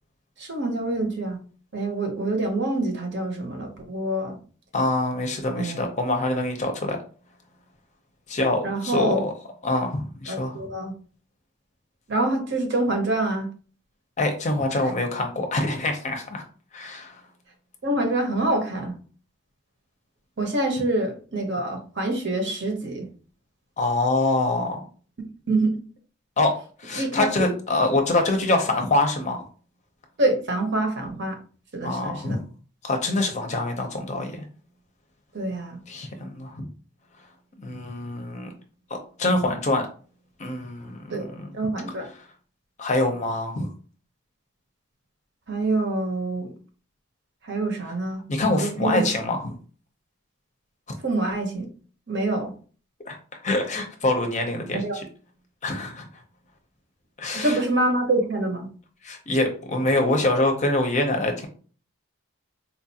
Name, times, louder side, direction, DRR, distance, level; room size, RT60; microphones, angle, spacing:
voice 1, 0.4-1.4 1.7-4.4 5.6-5.8 8.6-9.2 10.3-10.9 12.1-13.5 14.7-14.9 17.8-18.9 20.4-23.0 25.5-25.8 26.9-27.5 30.2-31.4 31.7-32.4 35.3-35.8 41.1-42.1 45.5-46.5 47.4-48.2 48.5-49.1 51.0-51.7 52.1-52.5 54.7-55.0 57.3-58.7, right 2 dB, 50° right, 4 dB, 0.8 m, -26 dB
voice 2, 4.7-7.0 8.3-9.3 9.6-10.7 14.2-16.5 16.7-17.2 23.8-24.8 26.4-26.5 26.8-29.4 31.8-32.4 32.8-34.5 35.9-36.7 37.6-38.5 39.2-39.9 40.4-41.5 42.8-43.7 48.3-49.5 53.1-53.2 53.4-55.0 55.6-56.0 57.2-57.6 59.0-61.5, left 2 dB, 35° left, 4 dB, 0.6 m, -25 dB
4.2 x 2.4 x 2.7 m, 0.40 s
head